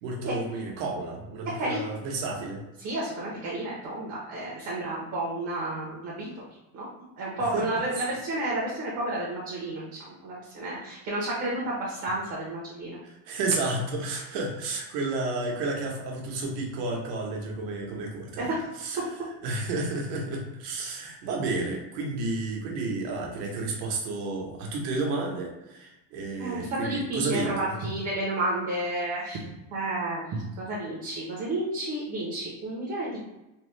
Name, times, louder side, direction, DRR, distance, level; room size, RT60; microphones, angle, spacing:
voice 1, 0.0-2.6 7.5-7.7 13.0-18.5 18.8-19.0 19.4-27.7, right 3 dB, 75° right, 0 dB, 1.0 m, -31 dB
voice 2, 2.8-6.4 6.7-6.9 7.2-13.0 18.4-18.7 19.0-19.1 26.4-29.4 29.7-33.2, right 1 dB, 35° right, -5 dB, 0.7 m, -31 dB
3.3 x 2.1 x 3.2 m, 0.99 s
cardioid pair, 165°, 48 cm